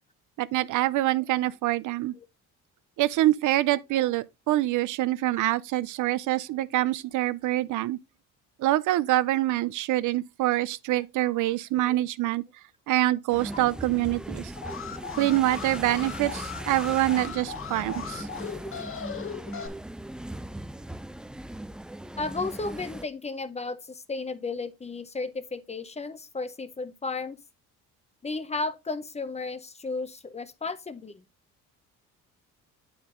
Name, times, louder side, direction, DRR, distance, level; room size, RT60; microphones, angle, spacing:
voice 1, 0.4-2.1 3.0-8.0 8.6-12.4 12.9-14.5 15.2-18.3, right 15 dB, 65° right, 0.5 m, -25 dB
sound 1, 13.3-23.1, right 1 dB, 5° right, 0.3 m, -39 dB
Alarm, 14.5-19.7, left 7 dB, 40° left, 1.0 m, -38 dB
voice 2, 22.2-27.4 28.2-31.2, left 3 dB, 20° left, 0.7 m, -34 dB
8.1 x 4.7 x 3.7 m
cardioid pair, 90°, 32 cm